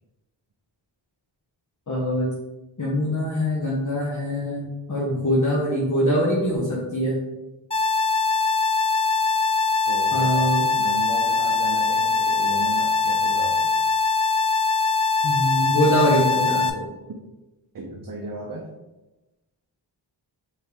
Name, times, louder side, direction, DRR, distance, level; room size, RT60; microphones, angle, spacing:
voice 1, 1.9-2.3 2.8-7.2 10.1-10.7 15.2-16.9, equal, 40° left, -6 dB, 1.0 m, -23 dB
sound 1, 7.7-16.7, left 4 dB, 15° left, 0.3 m, -22 dB
voice 2, 9.9-13.7 17.1-17.2 17.7-18.7, right 2 dB, 45° right, 0 dB, 0.6 m, -35 dB
4.5 x 3.2 x 3.4 m, 1.0 s
wide cardioid pair, 75°, 49 cm